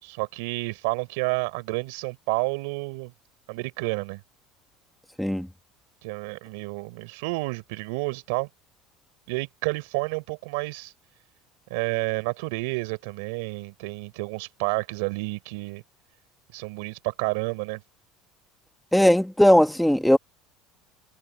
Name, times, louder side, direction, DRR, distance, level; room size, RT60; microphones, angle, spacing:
voice 1, 0.0-3.1 3.5-4.2 6.0-8.5 9.3-10.9 11.7-15.8 16.5-17.8, right 27 dB, 85° right, 4.4 m, -30 dB
voice 2, 18.9-20.2, equal, ahead, 2.0 m, -18 dB
cardioid pair, 130°, 0 cm